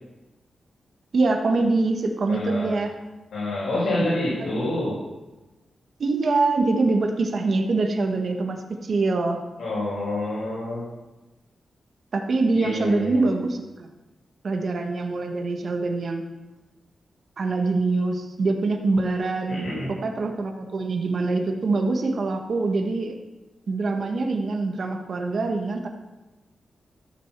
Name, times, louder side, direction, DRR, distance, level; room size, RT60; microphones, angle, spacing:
voice 1, 1.1-2.9 4.0-4.1 6.0-9.4 12.1-13.9 14.4-16.2 17.4-19.8 20.0-23.1 23.7-25.9, right 3 dB, 50° right, 4 dB, 1.6 m, -24 dB
voice 2, 2.3-2.7 3.3-5.0 9.6-10.9 12.5-13.2 19.5-19.9, left 1 dB, 80° left, -8 dB, 5.1 m, -27 dB
14.5 x 6.7 x 7.5 m, 1.1 s
wide cardioid pair, 145°, 0 cm